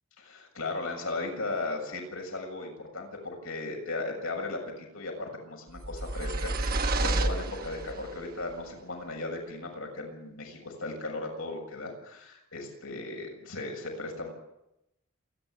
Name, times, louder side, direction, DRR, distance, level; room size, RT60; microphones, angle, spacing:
voice 1, 0.2-14.3, left 2 dB, 85° left, 2 dB, 6.9 m, -36 dB
sound 1, 5.8-8.2, right 2 dB, 45° right, 1.2 m, -30 dB
27.0 x 11.0 x 9.5 m, 0.87 s
head